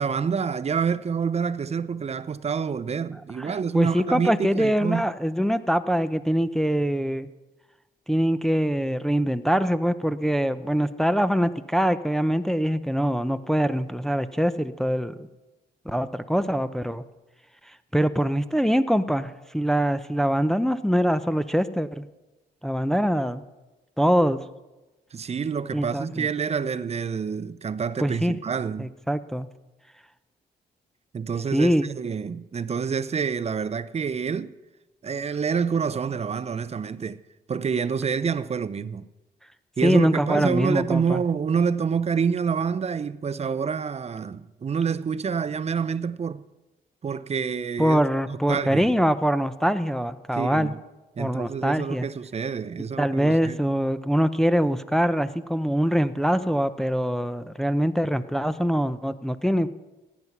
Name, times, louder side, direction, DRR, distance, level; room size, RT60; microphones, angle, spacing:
voice 1, 0.0-5.1 25.1-28.9 31.1-34.5 35.0-37.2 37.5-39.1 39.8-46.5 47.0-48.0 48.5-48.9 50.3-50.8 51.2-53.6, right 6 dB, 35° right, 0.6 m, -27 dB
voice 2, 3.4-7.3 8.1-15.3 15.9-17.0 17.9-22.0 22.6-23.4 24.0-24.4 25.7-26.3 28.0-28.3 28.8-29.5 31.5-31.8 39.8-41.2 47.8-50.7 51.2-52.1 53.0-59.7, equal, ahead, 0.7 m, -23 dB
17.0 x 9.6 x 5.9 m
cardioid pair, 80°, 18 cm